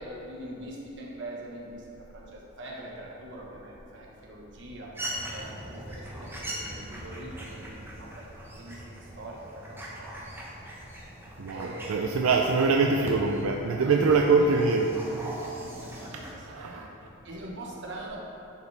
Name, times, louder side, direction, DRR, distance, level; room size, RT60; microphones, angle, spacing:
voice 1, 0.0-4.9 5.3-8.3 8.6-10.4 11.5-12.2 13.6-14.5 14.9-18.2, right 1 dB, 60° right, -3 dB, 1.3 m, -43 dB
sound 1, 4.9-16.4, right 1 dB, 10° right, 0.9 m, -41 dB
voice 2, 11.4-14.9 16.5-16.9, right 4 dB, 85° right, 2 dB, 0.4 m, -24 dB
10.0 x 5.4 x 3.3 m, 2.9 s
head